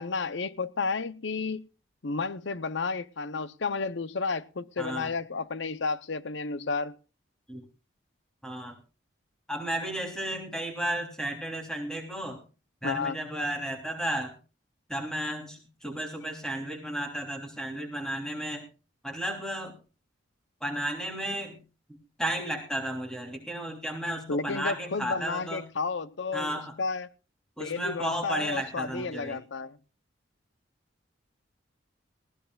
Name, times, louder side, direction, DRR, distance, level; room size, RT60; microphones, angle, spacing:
voice 1, 0.0-1.7 2.0-7.0 12.8-13.2 24.3-27.1 27.6-29.8, left 4 dB, 65° left, 0.7 m, -32 dB
voice 2, 4.8-5.1 7.5-7.7 8.4-8.8 9.5-12.4 12.8-14.4 14.9-18.7 19.0-19.8 20.6-21.6 21.9-25.7 26.3-26.8 27.6-29.4, right 1 dB, 5° left, 3.3 m, -33 dB
19.5 x 16.0 x 2.4 m
head